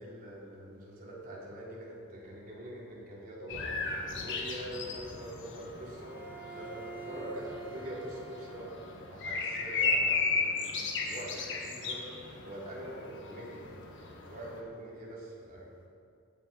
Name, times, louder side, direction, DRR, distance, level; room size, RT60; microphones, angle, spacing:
voice 1, 0.0-15.7, right 1 dB, 40° right, -5 dB, 3.2 m, -44 dB
sound 1, 3.5-14.6, left 4 dB, 55° left, 1.5 m, -35 dB
Bowed string instrument, 5.8-9.3, right 4 dB, 10° right, 1.4 m, -47 dB
16.5 x 9.4 x 4.3 m, 2.5 s
head